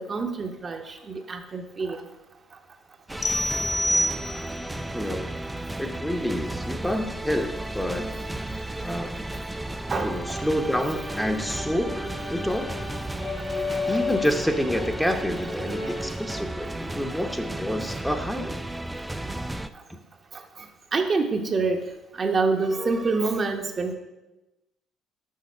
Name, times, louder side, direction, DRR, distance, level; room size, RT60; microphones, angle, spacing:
voice 1, 0.0-2.0 9.9-10.4 13.9-14.0 20.9-21.9 22.2-24.0, right 3 dB, 40° right, 4 dB, 1.0 m, -26 dB
sound 1, 3.1-19.7, right 1 dB, 10° right, 0.4 m, -34 dB
sound 2, 3.2-4.8, equal, 35° left, 0.8 m, -26 dB
voice 2, 4.9-5.3 5.8-8.1 8.8-9.3 10.0-12.7 13.9-18.6 19.9-20.0, equal, 5° left, 5 dB, 0.9 m, -28 dB
Brass instrument, 10.9-16.2, left 4 dB, 85° left, 2.2 m, -34 dB
6.5 x 5.6 x 5.6 m, 1.0 s
hypercardioid pair, 65°, 0 cm